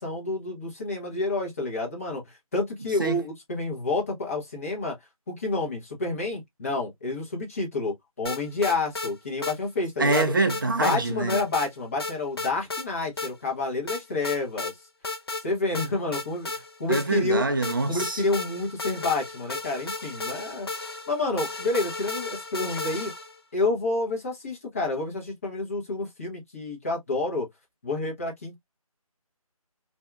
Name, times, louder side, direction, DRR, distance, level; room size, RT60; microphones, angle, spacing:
voice 1, 0.0-5.0 5.3-10.2 10.8-14.7 15.4-17.4 17.9-23.1 23.5-27.5 27.8-28.5, left 2 dB, 25° left, 0.9 m, -29 dB
sound 1, 8.3-9.1 9.4-9.6 10.1-11.0 11.3-11.7 12.0-12.9 13.2-13.3 13.9-14.7 15.0-15.5 15.8-17.3 17.6-23.4, left 3 dB, 45° left, 0.5 m, -34 dB
voice 2, 10.0-11.4 16.9-18.2, right 3 dB, 35° right, 0.4 m, -25 dB
2.7 x 2.3 x 2.2 m
figure-of-eight pair, 165°, 19 cm